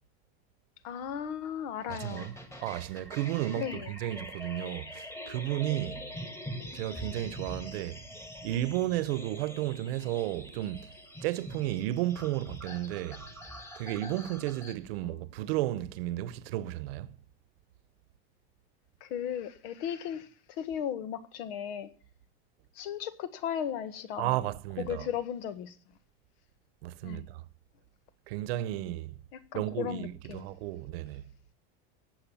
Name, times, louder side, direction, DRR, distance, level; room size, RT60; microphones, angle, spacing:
voice 1, 0.8-2.3 3.5-3.9 19.0-21.9 22.7-24.5 24.8-25.8 27.0-27.3 29.5-30.5, left 9 dB, 70° left, 1.7 m, -36 dB
sound 1, 1.9-14.7, equal, 10° left, 1.9 m, -44 dB
voice 2, 1.9-6.1 6.7-8.0 8.4-10.9 11.2-13.2 13.8-17.2 24.2-25.1 26.8-27.4 28.3-29.1 29.5-31.2, right 14 dB, 75° right, 1.0 m, -33 dB
19.5 x 8.0 x 7.2 m
supercardioid pair, 165°, 30 cm